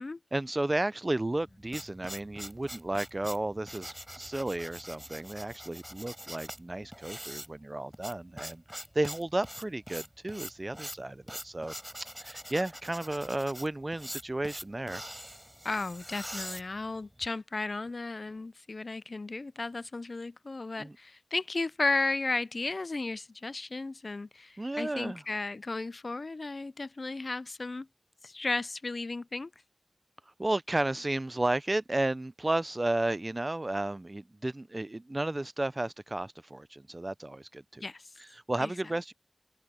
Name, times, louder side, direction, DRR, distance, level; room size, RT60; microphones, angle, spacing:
voice 1, 0.3-11.7 12.2-15.0 20.8-21.0 24.6-25.2 30.4-37.9 38.2-39.1, right 2 dB, 45° right, 0.5 m, -33 dB
sound 1, 1.3-17.3, equal, 5° right, 4.0 m, -44 dB
voice 2, 15.6-27.9 28.2-29.5 37.8-38.1 38.6-38.7, left 3 dB, 85° left, 0.3 m, -34 dB
wide cardioid pair, 55°, 0 cm